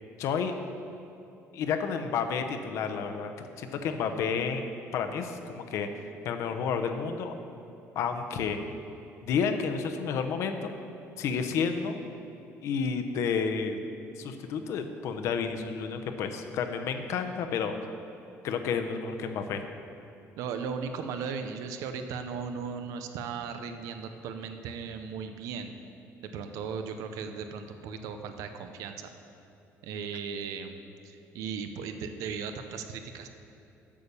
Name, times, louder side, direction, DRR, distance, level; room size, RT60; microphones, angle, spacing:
voice 1, 0.2-0.5 1.5-3.3 3.6-4.7 4.9-5.9 6.2-7.3 7.9-8.6 9.2-10.7 11.2-12.0 12.6-13.8 14.2-17.7 18.4-19.6, left 6 dB, 65° left, 6 dB, 0.8 m, -30 dB
voice 2, 20.4-25.7 26.2-29.1 29.8-30.7 31.0-33.3, right 6 dB, 85° right, 7 dB, 0.7 m, -37 dB
8.5 x 7.0 x 6.8 m, 2.7 s
cardioid pair, 155°, 5 cm